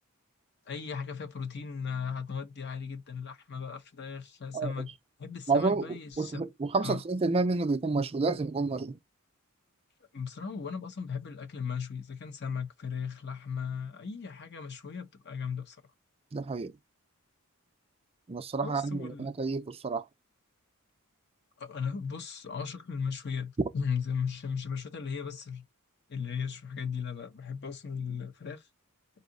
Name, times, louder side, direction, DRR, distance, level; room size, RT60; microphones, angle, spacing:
voice 1, 0.7-4.9 5.2-6.4 6.8-7.0 10.1-15.8 18.6-19.3 21.6-25.6 26.1-28.6, left 6 dB, 50° left, 0.8 m, -36 dB
voice 2, 5.5-9.0 16.3-16.7 18.3-20.0, right 3 dB, 25° right, 0.4 m, -29 dB
4.1 x 2.7 x 3.8 m
head